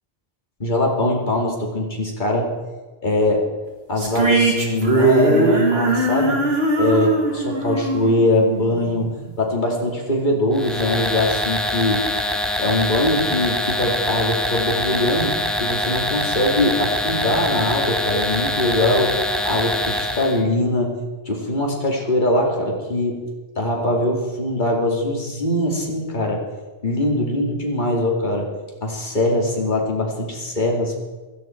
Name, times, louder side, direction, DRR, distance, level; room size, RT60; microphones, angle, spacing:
voice 1, 0.6-2.5 3.0-3.4 3.9-6.4 6.8-9.1 9.4-12.0 12.6-19.1 19.4-20.9 21.3-23.2 23.6-26.4 26.8-28.5 28.8-31.0, left 1 dB, 50° left, 0 dB, 2.6 m, -22 dB
sound 1, 4.0-9.3, right 2 dB, 75° right, 2.2 m, -20 dB
sound 2, 10.5-20.4, left 1 dB, ahead, 1.2 m, -24 dB
15.5 x 13.5 x 4.5 m, 1.2 s
omnidirectional pair, 1.0 m